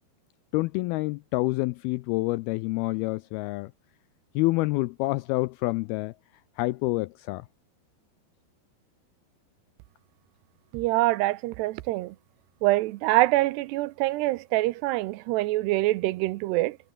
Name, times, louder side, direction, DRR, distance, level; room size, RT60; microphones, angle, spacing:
voice 1, 0.5-3.7 4.4-6.1 6.6-7.5, left 21 dB, 85° left, 2.2 m, -27 dB
voice 2, 10.7-12.2 12.6-16.8, right 18 dB, 80° right, 2.8 m, -25 dB
omnidirectional pair, 4.9 m